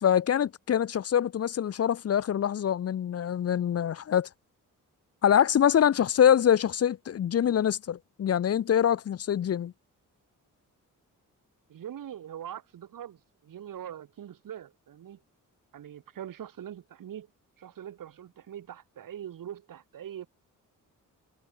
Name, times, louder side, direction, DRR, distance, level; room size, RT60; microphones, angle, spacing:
voice 1, 0.0-4.3 5.2-9.7, left 9 dB, 45° left, 0.7 m, -24 dB
voice 2, 11.7-15.2 15.7-17.3 17.6-20.3, right 10 dB, 75° right, 4.9 m, -42 dB
cardioid pair, 120°, 33 cm